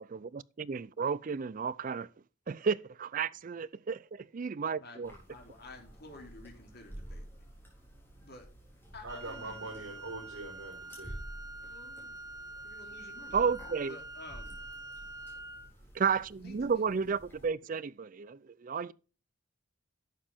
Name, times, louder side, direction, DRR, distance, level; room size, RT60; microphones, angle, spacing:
voice 1, 0.6-2.1 2.5-5.1 13.3-14.0 15.9-18.9, right 6 dB, 40° right, 0.4 m, -32 dB
voice 2, 4.8-7.4 8.2-8.5 8.9-9.6 11.7-12.2 12.6-13.4 13.8-14.6 16.4-17.1 17.4-17.7, left 2 dB, 50° left, 3.1 m, -52 dB
sound 1, 5.0-17.5, right 1 dB, 10° left, 4.1 m, -51 dB
voice 3, 9.0-11.2, right 2 dB, 85° right, 3.9 m, -43 dB
Wind instrument woodwind instrument, 9.1-15.7, right 2 dB, 15° right, 1.1 m, -46 dB
11.5 x 7.4 x 3.5 m
head